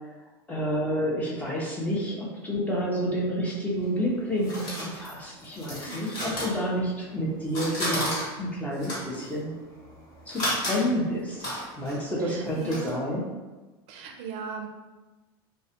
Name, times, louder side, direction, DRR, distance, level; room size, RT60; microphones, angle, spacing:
voice 1, 0.5-9.5 10.3-13.3, equal, 10° left, -4 dB, 0.6 m, -29 dB
sound 1, 3.8-7.2 7.4-12.9, equal, 35° left, 1.1 m, -34 dB
voice 2, 5.8-6.5 11.8-13.2 13.9-14.7, right 4 dB, 50° right, 3 dB, 0.4 m, -39 dB
2.3 x 2.1 x 2.8 m, 1.2 s
supercardioid pair, 125°, 13 cm